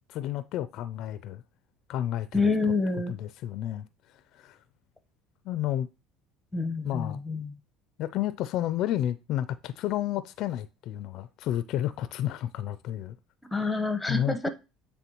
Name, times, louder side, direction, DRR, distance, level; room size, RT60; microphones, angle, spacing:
voice 1, 0.0-1.4 1.9-2.5 3.1-3.9 4.3-4.6 5.4-5.9 6.8-7.2 8.0-13.2 14.1-14.5, left 12 dB, 60° left, 0.4 m, -31 dB
voice 2, 2.3-3.1 6.5-7.5 13.5-14.5, left 3 dB, 5° left, 0.9 m, -27 dB
9.3 x 3.5 x 3.0 m
supercardioid pair, 110°, 0 cm